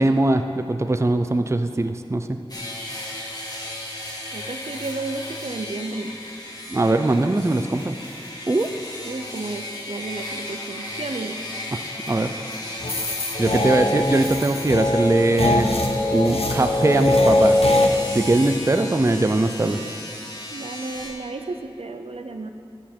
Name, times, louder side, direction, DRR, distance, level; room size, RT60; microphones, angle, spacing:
voice 1, 0.0-2.3 6.7-8.0 8.5-8.7 11.7-11.8 12.1-12.3 13.4-15.7 16.1-17.6 18.1-19.8, right 2 dB, 25° right, 8 dB, 0.4 m, -21 dB
sound 1, 2.5-21.1, left 1 dB, 40° left, 2.1 m, -35 dB
voice 2, 4.3-6.1 9.0-11.4 20.5-22.5, right 3 dB, 70° right, 7 dB, 0.6 m, -32 dB
sound 2, 12.8-17.9, left 1 dB, 75° left, 0.9 m, -21 dB
12.0 x 8.2 x 4.4 m, 2.6 s
wide cardioid pair, 45°, 10 cm